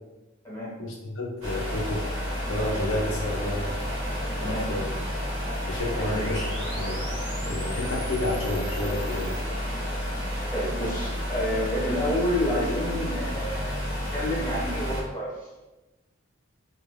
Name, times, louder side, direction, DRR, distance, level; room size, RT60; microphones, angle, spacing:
voice 1, 0.8-2.1 2.5-3.7 4.4-4.9 5.7-7.0 7.5-9.4, left 1 dB, 75° left, -2 dB, 0.5 m, -30 dB
sound 1, 1.4-15.0, equal, 90° right, 0.9 m, -30 dB
voice 2, 4.4-4.7 6.0-6.2 10.5-15.5, left 1 dB, 10° left, -8 dB, 1.1 m, -29 dB
sound 2, 5.8-9.4, right 1 dB, 25° right, 0.6 m, -42 dB
2.5 x 2.2 x 3.1 m, 1.1 s
head